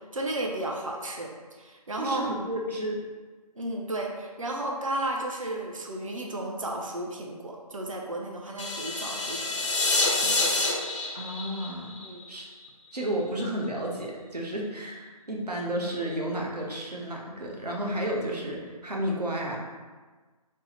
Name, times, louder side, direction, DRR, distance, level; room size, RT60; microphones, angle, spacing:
voice 1, 0.1-2.2 3.6-9.6 10.2-10.5 12.0-12.2, right 1 dB, 55° right, 0 dB, 0.5 m, -33 dB
voice 2, 2.0-3.0 11.1-12.0 12.3-12.5 12.9-19.6, right 1 dB, 85° right, -2 dB, 0.9 m, -32 dB
sound 1, 8.6-12.7, left 3 dB, 50° left, 0.6 m, -27 dB
3.4 x 2.0 x 4.1 m, 1.4 s
figure-of-eight pair, 155°, 20 cm